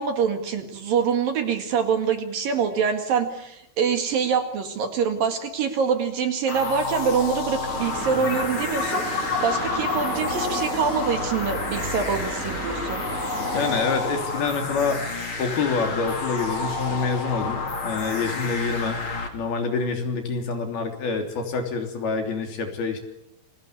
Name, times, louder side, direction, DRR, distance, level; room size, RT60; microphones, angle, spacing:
voice 1, 0.0-13.0, right 6 dB, 55° right, 7 dB, 3.3 m, -25 dB
sound 1, 6.5-19.3, left 3 dB, 35° left, 3.1 m, -30 dB
sound 2, 7.7-13.8, right 2 dB, 20° right, 3.8 m, -34 dB
sound 3, 8.2-13.1, left 4 dB, 85° left, 7.1 m, -31 dB
voice 2, 13.5-15.0 15.4-19.0 19.3-23.0, left 4 dB, 60° left, 4 dB, 5.0 m, -26 dB
29.5 x 22.5 x 8.3 m, 0.81 s
omnidirectional pair, 5.2 m